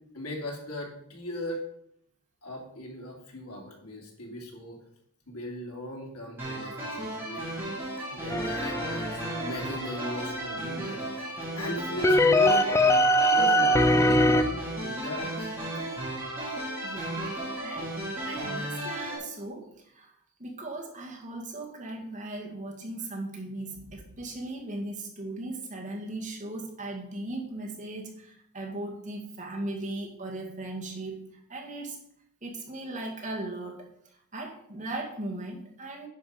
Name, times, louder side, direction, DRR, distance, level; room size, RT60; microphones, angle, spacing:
voice 1, 0.1-1.6 2.4-4.8 5.3-7.4 8.1-11.0 11.6-12.7 13.3-15.5, equal, 85° left, -1 dB, 3.0 m, -37 dB
sound 1, 6.4-19.2, right 1 dB, 10° right, 3.6 m, -35 dB
sound 2, 8.3-10.0 12.0-14.4, left 1 dB, 10° left, 0.4 m, -22 dB
voice 2, 16.8-17.2 17.6-17.9 18.2-19.7 19.9-20.1 20.4-32.0 32.4-33.9 34.3-36.1, right 2 dB, 35° right, 0 dB, 1.9 m, -37 dB
10.0 x 5.9 x 5.2 m, 0.70 s
head